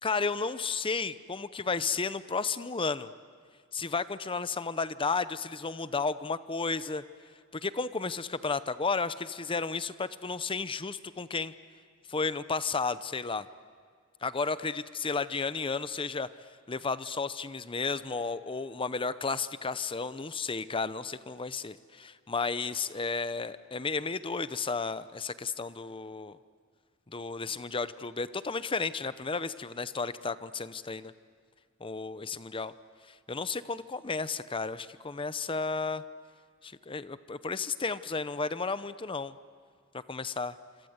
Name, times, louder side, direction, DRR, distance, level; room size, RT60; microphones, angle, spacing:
voice 1, 0.0-3.1 3.7-7.0 7.5-11.5 12.1-13.5 14.2-16.3 16.7-26.4 27.1-31.1 31.8-32.7 33.3-36.0 36.6-39.4 39.9-40.5, left 4 dB, 25° left, 14 dB, 0.7 m, -33 dB
27.0 x 26.0 x 8.0 m, 2.1 s
head